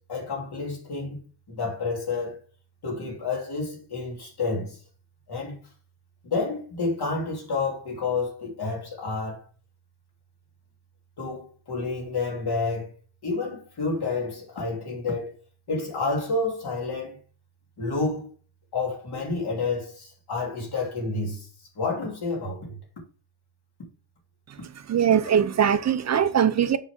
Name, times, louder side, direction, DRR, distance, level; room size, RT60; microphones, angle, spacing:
voice 1, 0.1-1.2 1.5-2.4 2.8-4.8 5.3-5.6 6.2-9.4 11.2-12.9 13.2-15.3 15.7-17.2 17.8-18.3 18.7-21.5 21.7-22.8, left 3 dB, 50° left, 3.0 m, -29 dB
voice 2, 24.5-26.8, right 8 dB, 35° right, 0.6 m, -22 dB
7.1 x 5.6 x 3.5 m
wide cardioid pair, 180°, 49 cm